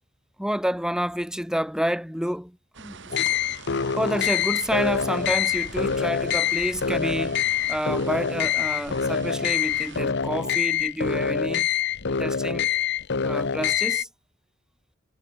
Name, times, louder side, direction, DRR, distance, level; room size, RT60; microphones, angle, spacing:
voice 1, 0.4-3.4 4.0-7.4 7.7-11.7 12.1-12.7 13.2-14.1, equal, 5° right, 3.3 m, -29 dB
sound 1, 2.7-10.0, right 4 dB, 60° right, 4.4 m, -44 dB
sound 2, 3.1-14.0, left 7 dB, 60° left, 0.9 m, -25 dB
head